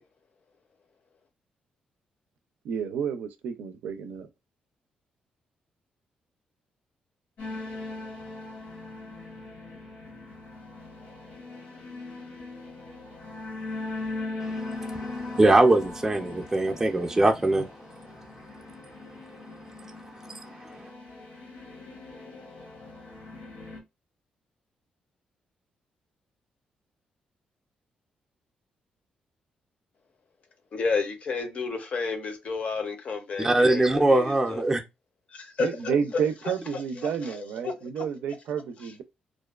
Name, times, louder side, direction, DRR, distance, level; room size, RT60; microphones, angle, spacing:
voice 1, 2.6-4.3 35.6-39.0, right 7 dB, 85° right, 0.4 m, -30 dB
sound 1, 7.4-23.8, left 2 dB, 85° left, 1.2 m, -40 dB
voice 2, 14.4-18.6 18.9-20.9 33.4-34.8, right 2 dB, 15° right, 0.4 m, -24 dB
voice 3, 30.7-34.6 35.3-36.0 37.0-37.3 37.6-37.7, left 4 dB, 50° left, 0.6 m, -31 dB
2.4 x 2.2 x 2.3 m
cardioid pair, 100°, 3 cm